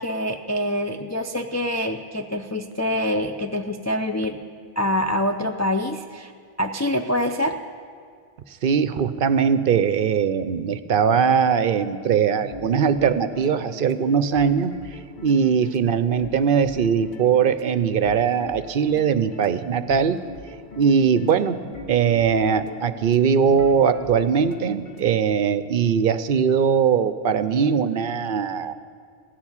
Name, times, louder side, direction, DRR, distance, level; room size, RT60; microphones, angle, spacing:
voice 1, 0.0-4.4 4.8-6.3 6.6-7.6, left 1 dB, 25° left, 4 dB, 0.3 m, -25 dB
voice 2, 8.6-14.7 15.2-20.2 20.8-21.6 21.9-28.7, right 7 dB, 60° right, 12 dB, 0.7 m, -20 dB
sound 1, 12.3-25.2, left 3 dB, 50° left, 1.0 m, -41 dB
16.5 x 7.2 x 9.7 m, 2.1 s
omnidirectional pair, 1.1 m